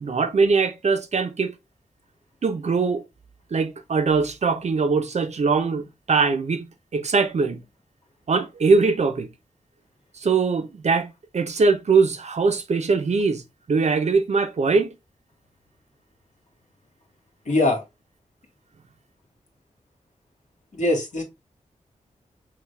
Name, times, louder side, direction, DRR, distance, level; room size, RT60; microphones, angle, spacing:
voice 1, 0.0-1.5 2.4-3.0 3.5-7.6 8.3-9.3 10.2-13.4 13.7-14.9, right 4 dB, 60° right, 0.8 m, -22 dB
voice 2, 17.5-17.8 20.7-21.2, left 2 dB, 65° left, 2.0 m, -21 dB
5.8 x 2.5 x 3.4 m
wide cardioid pair, 95°, 13 cm